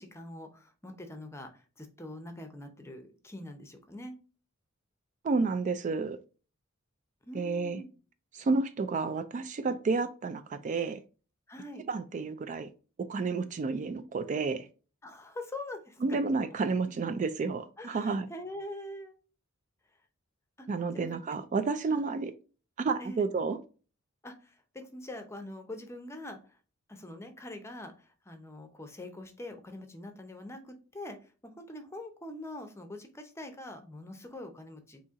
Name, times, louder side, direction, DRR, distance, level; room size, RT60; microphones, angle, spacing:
voice 1, 0.0-4.2 7.2-7.9 11.5-11.9 15.0-16.2 17.8-19.2 20.6-20.7 20.9-21.2 21.9-22.2 23.0-23.3 24.2-26.6 26.9-35.0, left 1 dB, 15° left, 0.6 m, -44 dB
voice 2, 5.2-6.2 7.3-7.8 8.3-11.0 11.9-12.7 13.1-14.7 16.0-18.3 20.7-22.3 22.8-23.6, right 4 dB, 40° right, 0.3 m, -30 dB
4.2 x 2.8 x 3.5 m
head